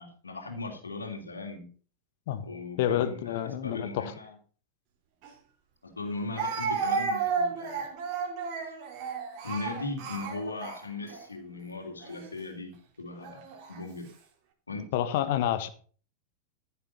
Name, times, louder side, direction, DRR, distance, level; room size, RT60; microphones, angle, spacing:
voice 1, 0.0-1.7 2.4-4.3 5.8-7.9 8.6-8.7 9.4-13.4 13.7-14.1 14.7-14.9, left 3 dB, 75° left, 1 dB, 3.0 m, -38 dB
voice 2, 2.8-4.1 14.9-15.7, left 11 dB, 50° left, 11 dB, 1.6 m, -28 dB
Speech, 5.2-5.3 6.4-11.2 12.0-12.3 13.2-13.8, right 5 dB, 45° right, 3.4 m, -32 dB
15.0 x 7.4 x 5.4 m, 0.41 s
figure-of-eight pair, 90°, 0 cm